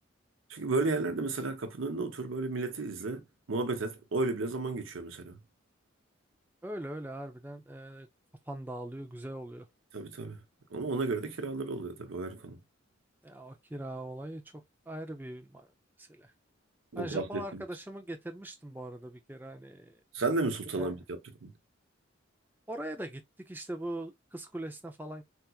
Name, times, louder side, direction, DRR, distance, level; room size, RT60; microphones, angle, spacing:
voice 1, 0.5-3.2 3.5-5.4 9.9-10.4 10.7-12.6 16.9-17.6 20.1-21.5, right 3 dB, 80° right, 0.8 m, -33 dB
voice 2, 6.6-8.1 8.5-9.7 13.2-15.7 16.0-16.3 17.0-20.0 20.7-21.0 22.7-25.2, right 1 dB, 10° right, 0.5 m, -41 dB
3.5 x 2.9 x 2.3 m
head